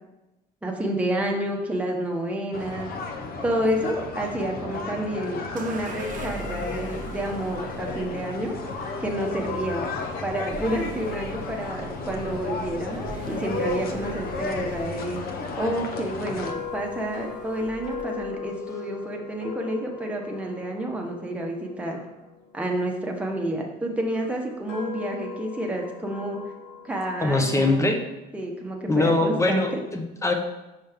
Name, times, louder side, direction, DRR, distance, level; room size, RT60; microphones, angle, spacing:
voice 1, 0.6-2.9 3.4-8.5 9.0-9.9 10.2-15.2 15.6-22.0 22.5-26.4 26.8-27.8 28.3-29.8, right 1 dB, 10° right, 0 dB, 1.0 m, -29 dB
sound 1, 2.5-16.5, left 4 dB, 60° left, 0.7 m, -33 dB
sound 2, 5.6-18.4, right 4 dB, 50° right, 0.6 m, -42 dB
sound 3, 15.1-23.3 24.0-27.5, left 7 dB, 80° left, 1.1 m, -40 dB
voice 2, 27.2-28.0 28.9-30.3, left 2 dB, 15° left, 4 dB, 0.8 m, -22 dB
5.5 x 5.3 x 3.5 m, 0.99 s
cardioid pair, 110°, 17 cm